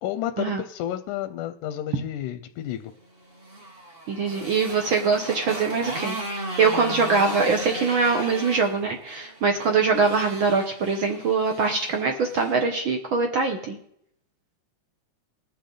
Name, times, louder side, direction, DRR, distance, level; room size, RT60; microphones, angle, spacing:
voice 1, 0.0-2.9, left 12 dB, 90° left, 10 dB, 2.1 m, -31 dB
Motorcycle, 3.2-12.6, right 1 dB, 25° right, 1.4 m, -36 dB
voice 2, 4.1-13.8, right 4 dB, 65° right, 3 dB, 1.2 m, -23 dB
20.5 x 6.9 x 3.8 m, 0.71 s
omnidirectional pair, 3.4 m